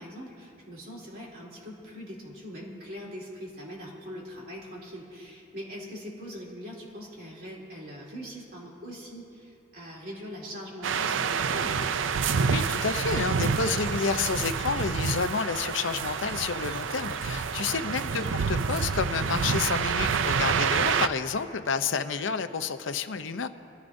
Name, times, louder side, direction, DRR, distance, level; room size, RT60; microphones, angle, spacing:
voice 1, 0.0-11.8 18.1-18.4, equal, 50° right, -4 dB, 3.1 m, -42 dB
sound 1, 10.8-21.1, right 6 dB, 90° right, 0.5 m, -28 dB
voice 2, 12.5-23.5, left 5 dB, 85° left, 10 dB, 0.6 m, -30 dB
25.0 x 14.5 x 2.6 m, 2.6 s
head